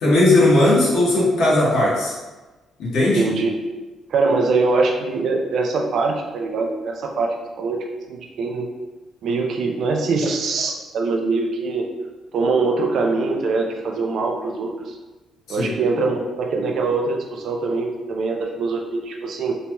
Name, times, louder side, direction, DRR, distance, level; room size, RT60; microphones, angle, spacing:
voice 1, 0.0-2.1 2.8-3.2 15.5-15.7, left 1 dB, 85° left, -6 dB, 1.1 m, -17 dB
voice 2, 3.1-3.5 4.1-7.8 8.1-8.7 9.2-11.9 12.3-15.0 15.5-19.6, right 3 dB, 70° right, 2 dB, 0.4 m, -23 dB
3.0 x 2.9 x 2.2 m, 1.2 s
cardioid pair, 90°, 0 cm